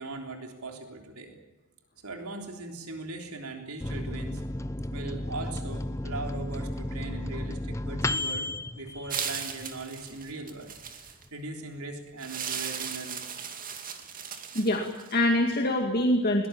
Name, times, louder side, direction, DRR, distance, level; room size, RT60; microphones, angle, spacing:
voice 1, 0.0-1.3 2.0-4.4 4.9-8.5 8.8-10.7 11.3-13.3, right 2 dB, 85° right, 3 dB, 3.5 m, -39 dB
Microwave oven, 3.8-9.9 10.3-10.4 10.6-11.3, left 1 dB, 15° left, 0.7 m, -33 dB
sound 1, 9.1-11.3 12.2-15.2, right 7 dB, 40° right, 2.4 m, -37 dB
voice 2, 14.5-16.5, left 1 dB, 45° left, 2 dB, 2.3 m, -25 dB
22.0 x 20.0 x 8.8 m, 1.2 s
head